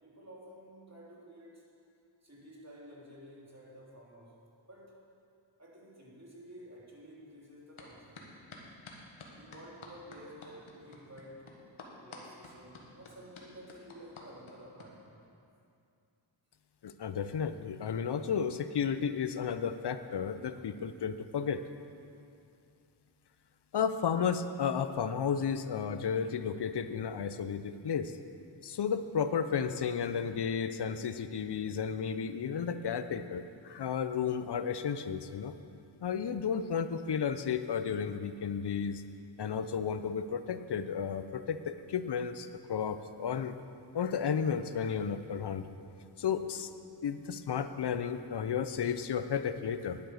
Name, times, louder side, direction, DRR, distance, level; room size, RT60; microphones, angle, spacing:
voice 1, 0.0-1.7 2.2-4.4 4.7-4.9 5.6-8.2 9.4-11.5 12.0-15.2, equal, 35° right, -5 dB, 3.3 m, -52 dB
sound 1, 7.8-7.9 8.2-14.9, left 3 dB, 85° left, 1.5 m, -49 dB
voice 2, 16.8-21.6 23.7-28.1 28.6-35.6 36.0-39.0 39.4-43.5 43.9-45.6 46.2-46.7 47.0-50.0, left 7 dB, 55° left, 11 dB, 0.7 m, -33 dB
10.5 x 8.8 x 6.6 m, 2.5 s
cardioid pair, 60°, 47 cm